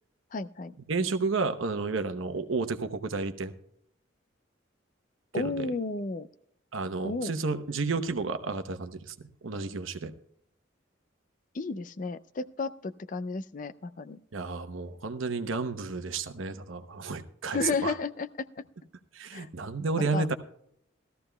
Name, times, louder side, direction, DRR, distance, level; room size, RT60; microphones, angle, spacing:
voice 1, 0.3-0.7 5.3-6.3 7.0-7.3 11.5-14.2 17.5-18.6 19.3-19.5 20.1-20.3, left 3 dB, 40° left, 13 dB, 0.4 m, -33 dB
voice 2, 0.9-3.5 5.3-5.7 6.7-10.1 14.3-17.9 19.1-20.3, right 4 dB, 85° right, 9 dB, 0.9 m, -31 dB
17.5 x 14.0 x 2.2 m, 0.72 s
head